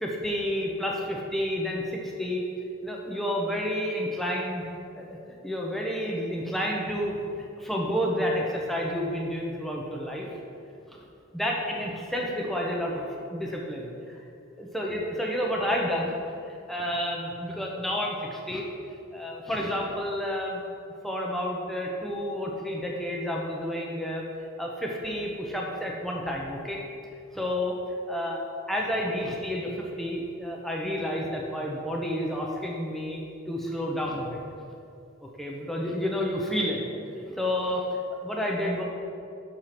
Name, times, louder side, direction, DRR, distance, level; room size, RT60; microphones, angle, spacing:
voice 1, 0.0-2.5 2.8-4.7 4.9-5.2 5.4-7.2 7.6-10.3 10.9-11.0 11.3-13.0 13.3-14.2 14.6-16.1 16.4-18.6 19.1-20.6 21.0-24.2 24.6-26.8 27.3-27.8 28.1-28.4 28.7-33.2 33.5-34.4 35.2-36.8 37.3-38.8, equal, ahead, -2 dB, 0.8 m, -30 dB
6.7 x 4.5 x 5.9 m, 2.6 s
head